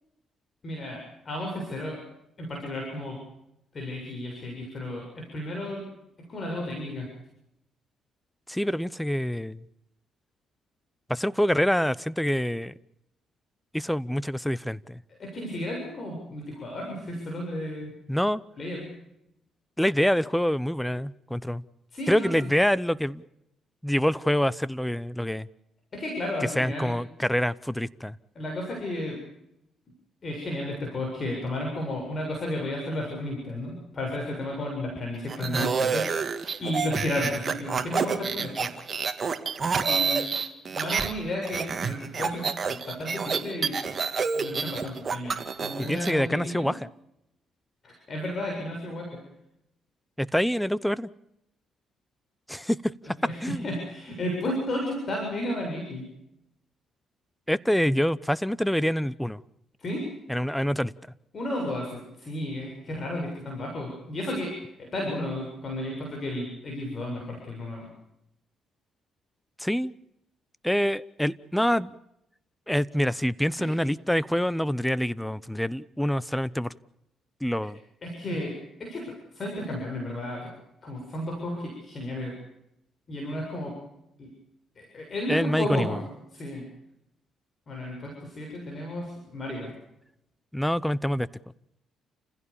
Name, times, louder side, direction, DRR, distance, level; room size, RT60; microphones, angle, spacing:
voice 1, 0.6-2.0 2.4-3.2 3.7-5.9 6.2-7.1 15.2-18.0 18.6-19.0 21.9-22.5 25.9-26.9 28.4-29.2 30.2-36.1 36.6-38.7 39.9-40.2 40.7-42.6 42.8-43.7 44.3-46.8 47.8-49.2 53.2-56.1 59.8-60.1 61.3-67.9 78.0-79.1 79.3-80.5 80.8-82.3 83.1-83.7 84.2-84.3 84.8-86.0 86.3-86.7 87.7-89.7, left 1 dB, 40° left, 0 dB, 7.4 m, -33 dB
voice 2, 8.5-9.6 11.1-12.7 13.7-15.0 18.1-18.4 19.8-21.6 22.1-23.2 23.8-25.5 26.6-28.2 45.8-46.8 50.2-51.1 52.5-52.9 53.4-53.7 57.5-59.4 60.3-60.9 69.6-69.9 70.6-72.0 72.7-76.7 77.4-77.8 78.3-78.4 85.3-86.0 90.5-91.3, equal, 5° left, 20 dB, 0.8 m, -26 dB
sound 1, 35.3-41.1 41.4-46.1, right 5 dB, 40° right, 2.2 m, -28 dB
29.5 x 16.0 x 7.1 m, 0.83 s
cardioid pair, 90°, 0 cm